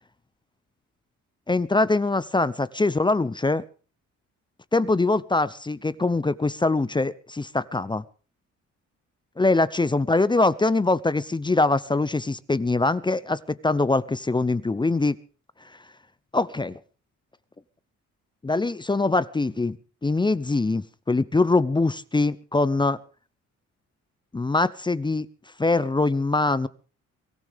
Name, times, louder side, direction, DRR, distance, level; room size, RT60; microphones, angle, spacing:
voice 1, 1.5-3.6 4.7-8.0 9.4-15.2 16.3-16.8 18.4-19.8 20.0-23.0 24.3-25.3 25.6-26.7, left 3 dB, 15° left, 17 dB, 0.7 m, -23 dB
23.5 x 14.5 x 3.5 m, 0.38 s
cardioid pair, 90°, 30 cm